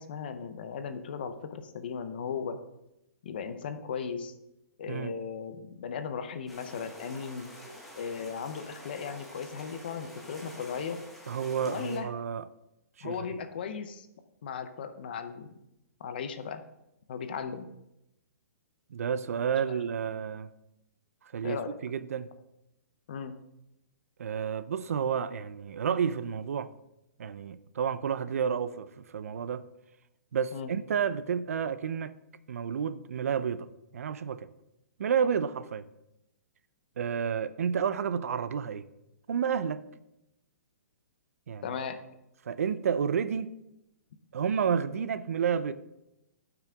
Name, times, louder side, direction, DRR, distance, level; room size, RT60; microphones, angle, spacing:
voice 1, 0.0-2.6 3.2-4.3 4.8-7.5 8.0-11.0 11.6-12.1 13.0-14.1 14.4-15.5 16.0-16.6 17.1-17.7 19.7-19.8 21.4-21.8 23.1-23.4 30.5-30.7 41.6-42.0, left 6 dB, 35° left, 0.6 m, -37 dB
sound 1, 6.5-12.0, equal, ahead, 0.8 m, -47 dB
voice 2, 11.3-12.4 13.0-13.2 18.9-20.5 21.3-22.3 24.2-26.7 27.2-29.6 30.3-32.1 32.5-33.7 33.9-34.5 35.0-35.8 37.0-38.8 39.3-39.8 41.5-41.8 42.5-43.5 44.3-45.7, right 7 dB, 60° right, 0.4 m, -30 dB
12.0 x 5.9 x 3.5 m
hypercardioid pair, 180°, 9 cm